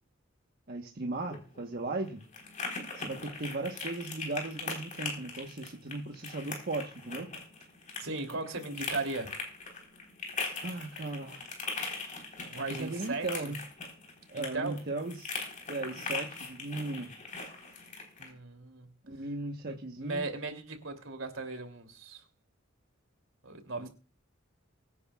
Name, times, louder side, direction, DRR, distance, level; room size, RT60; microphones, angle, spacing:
voice 1, 0.7-2.2 2.9-7.3 10.6-11.4 12.5-13.6 14.3-15.3 15.7-17.1 19.0-20.2 23.8-23.9, right 2 dB, 50° right, 1.2 m, -37 dB
sound 1, 1.1-18.3, left 3 dB, 40° left, 4.0 m, -41 dB
voice 2, 8.0-9.4 12.5-13.3 14.3-14.8 18.2-18.9 19.7-19.8 20.0-22.2 23.4-23.9, right 3 dB, 75° right, 2.9 m, -37 dB
23.5 x 9.7 x 2.4 m
head